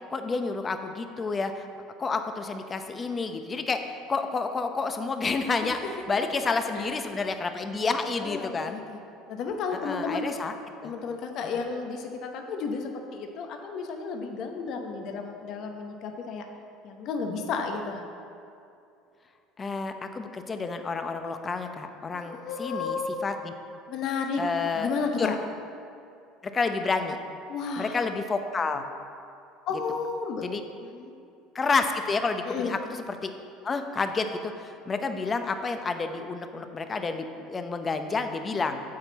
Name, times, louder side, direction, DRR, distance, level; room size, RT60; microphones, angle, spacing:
voice 1, 0.1-1.7 2.0-3.8 4.1-8.8 9.7-10.5 10.8-10.9 11.4-11.6 19.6-23.5 24.4-24.9 25.2-25.3 26.4-27.2 27.8-28.9 30.4-30.6 31.5-33.3 33.6-38.8, left 4 dB, 25° left, 7 dB, 0.7 m, -29 dB
voice 2, 8.2-9.0 9.3-10.3 10.8-16.5 16.8-18.0 22.1-23.2 23.9-24.4 24.8-25.4 27.5-27.9 29.7-30.5 30.9-31.1 32.5-32.7, left 5 dB, 55° left, 4 dB, 0.9 m, -32 dB
8.5 x 4.4 x 7.1 m, 2.6 s
supercardioid pair, 95°, 0 cm